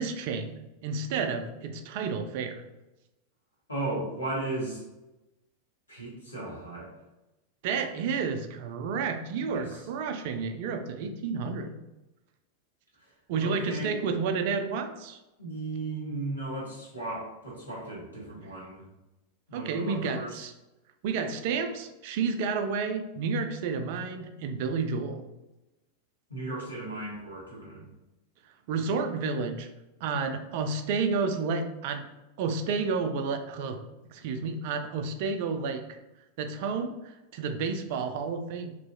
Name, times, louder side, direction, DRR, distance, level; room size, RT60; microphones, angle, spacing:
voice 1, 0.0-2.6 7.6-11.8 13.3-15.2 19.5-20.5 21.0-25.2 28.7-29.7 30.0-32.1 32.4-33.8 34.1-35.8 36.4-38.8, right 5 dB, 50° right, 7 dB, 0.3 m, -31 dB
voice 2, 3.7-4.8 5.9-6.9 9.5-9.8 13.4-13.9 15.4-18.9 19.5-20.4 26.3-27.8, right 2 dB, 80° left, -5 dB, 1.1 m, -36 dB
2.9 x 2.4 x 2.6 m, 1.0 s
figure-of-eight pair, 90°, 0 cm